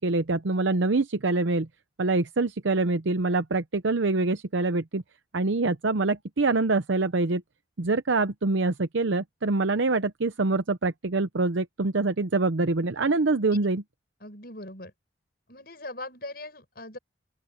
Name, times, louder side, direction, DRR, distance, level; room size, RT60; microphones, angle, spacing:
voice 1, 0.0-1.7 2.0-5.0 5.3-7.4 7.8-13.8, right 3 dB, 75° right, 0.8 m, -25 dB
voice 2, 14.2-14.9 15.5-17.0, left 2 dB, 50° left, 7.0 m, -40 dB
open air
head